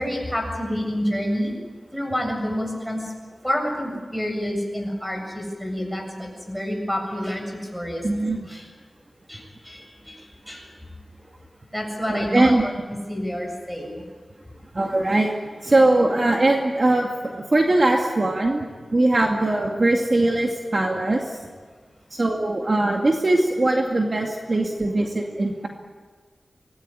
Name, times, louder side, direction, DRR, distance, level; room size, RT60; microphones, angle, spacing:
voice 1, 0.0-1.5 1.9-3.1 3.4-7.4 7.7-8.0 8.5-8.6 9.3-10.7 11.7-14.0, equal, ahead, 2 dB, 7.6 m, -28 dB
voice 2, 8.0-8.5 12.1-12.6 14.7-21.4 22.1-25.7, right 2 dB, 40° right, 1 dB, 2.3 m, -21 dB
25.0 x 19.0 x 9.9 m, 1.5 s
wide cardioid pair, 100°, 0 cm